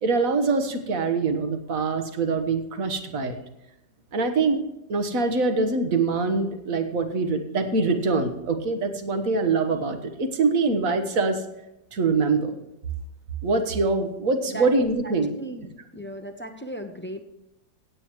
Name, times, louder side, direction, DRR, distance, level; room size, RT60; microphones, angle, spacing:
voice 1, 0.0-3.4 4.1-4.6 4.9-11.4 11.9-12.5 13.4-15.3, right 3 dB, 55° right, 7 dB, 1.6 m, -24 dB
voice 2, 15.3-17.2, right 1 dB, 10° left, 6 dB, 0.5 m, -36 dB
16.5 x 9.2 x 3.1 m, 0.90 s
omnidirectional pair, 1.9 m